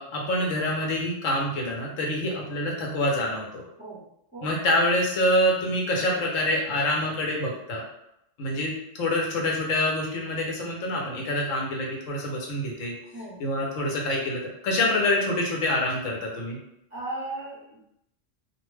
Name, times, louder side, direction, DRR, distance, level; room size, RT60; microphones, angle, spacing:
voice 1, 0.0-3.6 4.4-7.8 8.4-12.9 13.4-16.6, left 1 dB, 85° left, -1 dB, 1.1 m, -26 dB
voice 2, 16.9-17.8, right 2 dB, 15° left, -9 dB, 0.7 m, -36 dB
2.5 x 2.1 x 3.1 m, 0.79 s
omnidirectional pair, 1.3 m